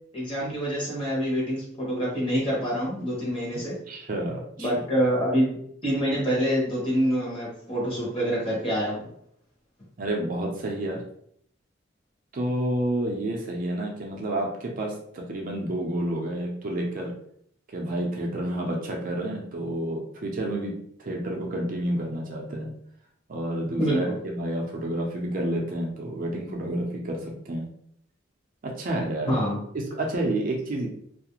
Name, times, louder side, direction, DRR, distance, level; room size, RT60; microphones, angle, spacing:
voice 1, 0.1-3.8 4.6-5.6 5.8-9.1 23.8-24.1 29.3-29.6, equal, 30° left, -5 dB, 0.9 m, -26 dB
voice 2, 3.9-4.8 10.0-11.0 12.3-17.1 17.7-20.7 21.0-22.7 23.3-27.7 28.6-29.3 29.7-30.9, right 1 dB, 45° right, 0 dB, 0.4 m, -29 dB
2.4 x 2.0 x 2.9 m, 0.67 s
head